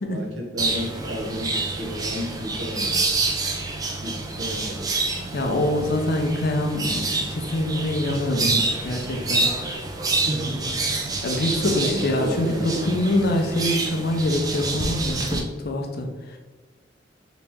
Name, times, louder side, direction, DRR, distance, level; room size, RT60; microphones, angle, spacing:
voice 1, 0.0-3.1 4.0-4.9 10.1-10.8 11.6-12.9, equal, 65° right, 0 dB, 0.8 m, -32 dB
sound 1, 0.6-15.4, right 3 dB, 20° right, 0.4 m, -27 dB
voice 2, 5.3-9.5 11.2-16.4, left 1 dB, 55° left, 3 dB, 0.5 m, -25 dB
3.0 x 2.9 x 3.4 m, 1.3 s
head